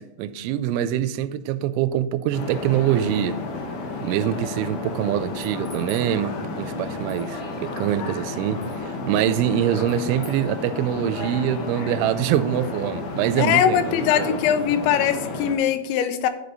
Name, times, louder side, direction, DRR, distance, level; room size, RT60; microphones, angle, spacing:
voice 1, 0.0-3.4 4.0-14.4, right 11 dB, 85° right, 14 dB, 2.9 m, -24 dB
sound 1, 2.3-15.5, left 3 dB, 65° left, 2.2 m, -32 dB
sound 2, 5.2-6.1 7.1-7.3 8.6-8.8 9.9-10.5, left 1 dB, 40° left, 1.7 m, -46 dB
voice 2, 13.4-16.3, left 9 dB, 80° left, 10 dB, 2.9 m, -21 dB
11.5 x 5.0 x 4.0 m, 0.92 s
omnidirectional pair, 5.4 m